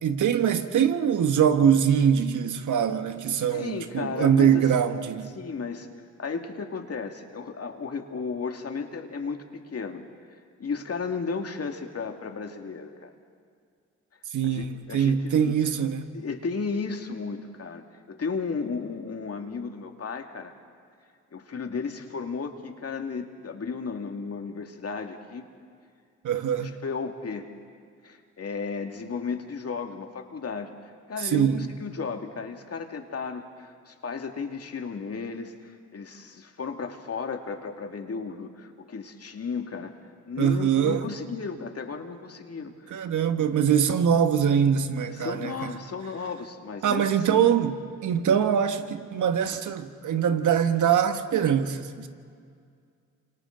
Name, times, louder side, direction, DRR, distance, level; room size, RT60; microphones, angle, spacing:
voice 1, 0.0-5.3 14.3-16.1 26.2-26.7 31.2-31.7 40.4-41.0 42.9-45.7 46.8-52.1, right 8 dB, 60° right, 1.5 m, -23 dB
voice 2, 3.5-4.7 5.3-5.9 6.2-10.0 10.3-13.1 14.4-15.5 16.1-20.5 21.3-25.5 26.6-27.5 28.0-39.9 40.3-43.1 45.1-47.5, left 5 dB, 45° left, 2.4 m, -34 dB
29.0 x 26.5 x 4.0 m
supercardioid pair, 50°, 34 cm